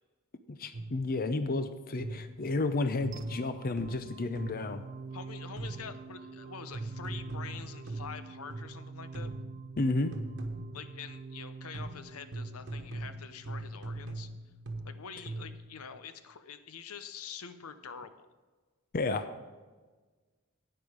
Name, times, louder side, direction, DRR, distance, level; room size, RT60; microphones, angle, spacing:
voice 1, 0.5-4.8 9.8-10.2 18.9-19.3, left 2 dB, 45° left, 10 dB, 0.6 m, -31 dB
sound 1, 0.7-1.1 2.0-2.4 3.0-4.8 5.6-6.0 6.7-8.8 9.1-9.6 10.1-10.9 11.7-15.7, right 2 dB, 55° right, 1.2 m, -40 dB
sound 2, 3.1-14.1, right 4 dB, 35° right, 0.4 m, -47 dB
voice 2, 5.1-9.3 10.7-14.3 14.8-18.3, left 6 dB, 90° left, 11 dB, 0.7 m, -46 dB
10.5 x 8.9 x 5.1 m, 1.3 s
head